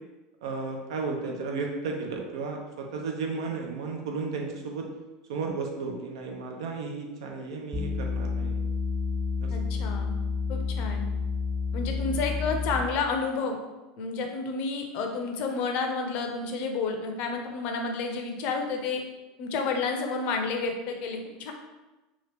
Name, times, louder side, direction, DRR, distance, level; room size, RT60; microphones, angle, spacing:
voice 1, 0.4-4.9 5.3-8.5 9.4-9.5, right 4 dB, 90° right, 2 dB, 0.6 m, -33 dB
sound 1, 7.7-13.0, left 5 dB, 5° right, 0.4 m, -30 dB
voice 2, 9.5-10.1 10.5-11.1 11.7-13.6 14.0-19.0 19.4-21.5, left 4 dB, 50° left, 3 dB, 0.5 m, -30 dB
2.8 x 2.4 x 3.3 m, 1.1 s
supercardioid pair, 145°, 3 cm